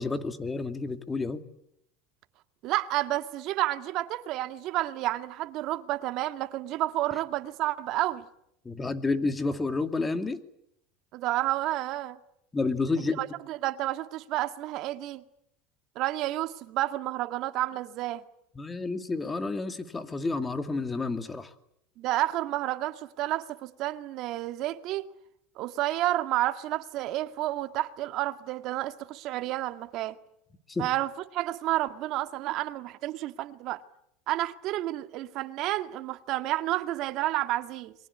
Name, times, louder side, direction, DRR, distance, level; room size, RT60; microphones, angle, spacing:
voice 1, 0.0-1.4 8.6-10.4 12.5-13.2 18.6-21.5 30.7-30.9, left 3 dB, 15° left, 2.4 m, -30 dB
voice 2, 2.6-8.3 11.1-12.2 13.2-15.2 16.0-18.2 22.0-25.1 25.6-30.2 30.8-33.8 34.3-37.9, right 15 dB, 50° right, 1.9 m, -30 dB
28.5 x 23.5 x 8.5 m
supercardioid pair, 125°, 0 cm